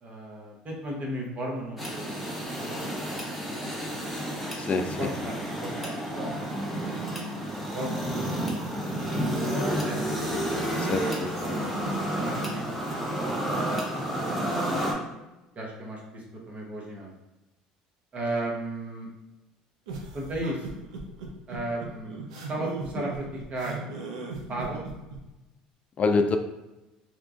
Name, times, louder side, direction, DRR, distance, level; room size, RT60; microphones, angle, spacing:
voice 1, 0.0-3.2 3.4-3.9 5.0-10.0 11.4-13.7 15.5-17.1 18.1-19.1 20.1-20.7 21.5-22.2 22.5-23.9 24.5-24.8, right 1 dB, 40° right, -1 dB, 0.8 m, -36 dB
sound 1, 1.8-14.9, right 1 dB, ahead, 0.8 m, -30 dB
voice 2, 4.6-5.1 10.8-11.6 26.0-26.4, left 4 dB, 40° left, 6 dB, 0.3 m, -26 dB
sound 2, 19.9-25.2, right 4 dB, 80° right, 0.4 m, -38 dB
2.9 x 2.3 x 2.4 m, 1.0 s
hypercardioid pair, 70°, 4 cm